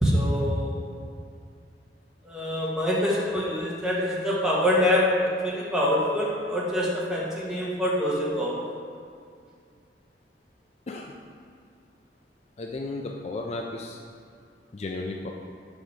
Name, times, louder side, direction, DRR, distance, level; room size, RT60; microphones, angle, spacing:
voice 1, 0.0-0.8 2.2-8.6, left 1 dB, 5° right, -6 dB, 1.3 m, -25 dB
voice 2, 12.6-14.0 14.7-15.3, left 2 dB, 35° left, 1 dB, 0.4 m, -34 dB
5.4 x 5.0 x 6.0 m, 2.3 s
head